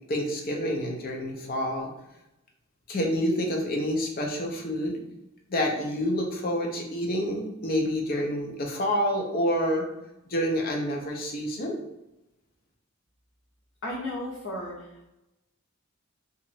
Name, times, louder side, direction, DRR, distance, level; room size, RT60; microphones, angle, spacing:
voice 1, 0.1-1.9 2.9-5.0 5.5-9.9 10.3-11.8, equal, 45° left, 1 dB, 0.7 m, -28 dB
voice 2, 13.8-15.1, left 1 dB, 70° left, -8 dB, 0.9 m, -35 dB
3.0 x 2.5 x 4.1 m, 0.90 s
head